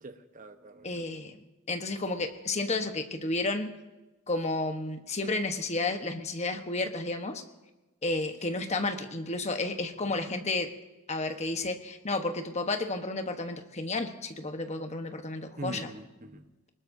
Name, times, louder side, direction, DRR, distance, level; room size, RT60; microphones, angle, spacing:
voice 1, 0.0-1.1 8.3-8.4 15.6-16.7, right 1 dB, 35° right, 7 dB, 1.0 m, -43 dB
voice 2, 0.8-3.7 4.3-7.4 8.0-10.7 11.1-15.9, left 2 dB, 30° left, 6 dB, 1.2 m, -32 dB
23.0 x 20.0 x 2.7 m, 1.1 s
head